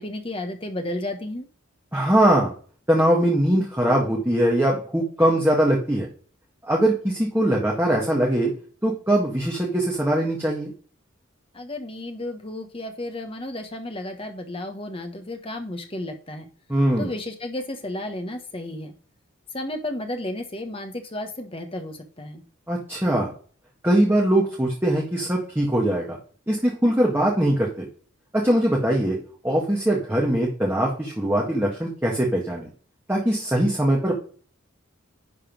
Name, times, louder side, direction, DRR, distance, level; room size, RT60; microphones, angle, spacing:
voice 1, 0.0-1.4 11.5-16.5 17.0-18.9 19.5-22.4, left 1 dB, 25° left, 5 dB, 1.3 m, -33 dB
voice 2, 1.9-2.5 2.9-6.1 6.7-8.5 8.8-10.7 16.7-17.1 22.7-23.3 23.8-26.2 26.5-27.9 28.3-29.2 29.4-32.7 33.1-34.1, right 1 dB, 10° right, -3 dB, 1.7 m, -21 dB
11.0 x 4.1 x 5.3 m, 0.43 s
head